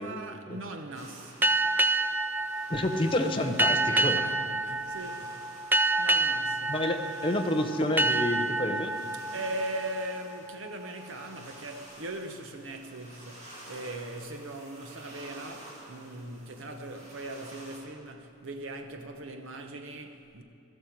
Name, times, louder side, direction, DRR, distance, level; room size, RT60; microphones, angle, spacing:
voice 1, 0.0-1.4 4.0-5.4 6.0-6.7 9.3-20.4, right 1 dB, 70° right, 0.9 m, -39 dB
sound 1, 0.9-17.8, right 1 dB, 35° right, 2.4 m, -51 dB
sound 2, 1.4-10.7, right 2 dB, 10° right, 0.3 m, -28 dB
voice 2, 2.7-4.2 6.7-8.9, left 1 dB, 25° left, 0.8 m, -29 dB
16.0 x 13.0 x 4.6 m
head